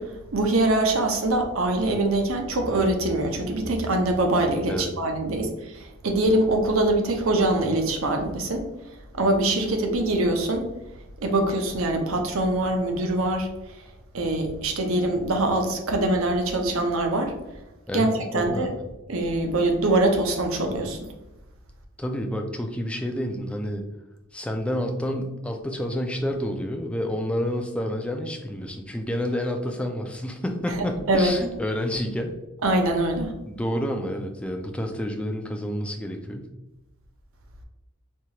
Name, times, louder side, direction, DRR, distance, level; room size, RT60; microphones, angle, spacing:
voice 1, 0.0-8.6 9.2-10.6 11.2-13.5 14.1-17.3 17.9-18.1 18.3-18.7 19.1-21.0 30.8-31.3 32.6-33.3, right 2 dB, 70° right, 4 dB, 0.6 m, -23 dB
voice 2, 17.9-18.8 22.0-23.8 24.3-32.4 33.4-36.5, equal, 5° left, 3 dB, 0.3 m, -29 dB
4.5 x 2.3 x 2.8 m, 0.98 s
head